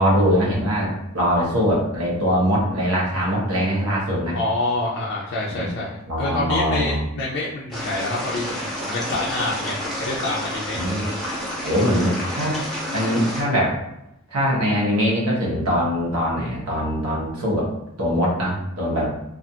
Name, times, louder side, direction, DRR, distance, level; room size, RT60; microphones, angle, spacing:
voice 1, 0.0-4.4 5.5-5.8 6.1-7.0 10.7-11.1 11.6-12.6 12.9-13.8 14.3-17.7 18.0-19.1, equal, 85° right, -4 dB, 0.9 m, -22 dB
voice 2, 4.3-10.8, left 2 dB, 55° left, -6 dB, 0.4 m, -27 dB
Babbling brook closeup, 7.7-13.4, equal, ahead, 0.6 m, -30 dB
2.4 x 2.4 x 2.7 m, 0.85 s
head